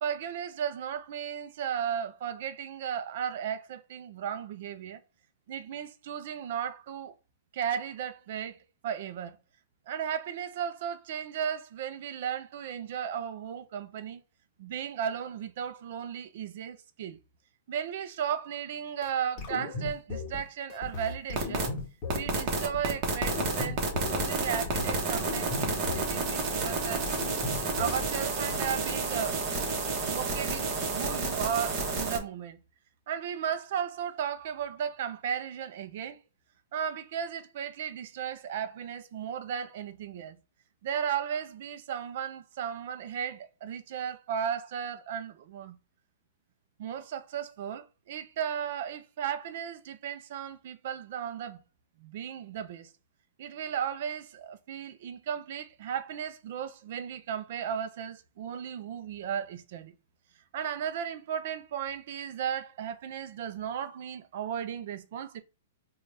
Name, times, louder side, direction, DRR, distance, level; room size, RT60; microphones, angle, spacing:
voice 1, 0.0-5.0 5.5-7.1 7.5-8.6 8.8-9.4 9.9-14.2 14.6-17.2 17.7-21.7 22.1-27.1 27.8-29.4 30.0-32.6 33.1-36.2 36.7-40.4 40.8-45.8 46.8-51.6 52.0-52.9 53.4-59.9 60.5-65.4, right 8 dB, 55° right, 0.4 m, -35 dB
sound 1, 19.0-19.1 19.4-20.4 20.7-22.3 22.7-22.9 23.2-24.2 24.5-26.2 26.6-26.8 27.1-28.6, left 3 dB, 30° left, 1.2 m, -37 dB
sound 2, 21.3-21.7 22.1-32.2, right 3 dB, 30° right, 0.9 m, -30 dB
3.9 x 2.3 x 3.2 m
hypercardioid pair, 155°, 0 cm